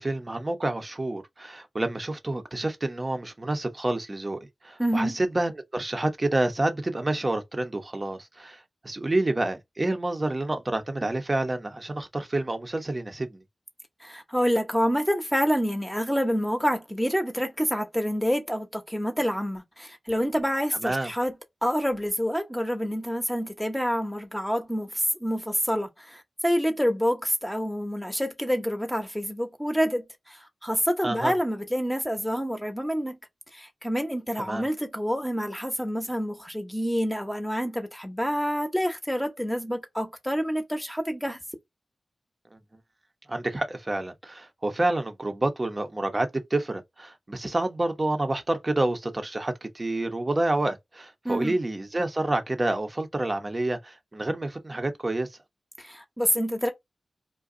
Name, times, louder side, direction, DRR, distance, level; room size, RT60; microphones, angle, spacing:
voice 1, 0.0-13.4 20.8-21.1 31.0-31.3 34.5-34.6 42.5-42.6 43.3-55.3, right 2 dB, 35° right, 0.7 m, -28 dB
voice 2, 4.8-5.2 14.0-21.4 21.6-33.2 33.5-41.4 51.2-51.6 55.8-56.7, equal, 5° left, 0.8 m, -27 dB
2.5 x 2.2 x 3.7 m
cardioid pair, 50°, 0 cm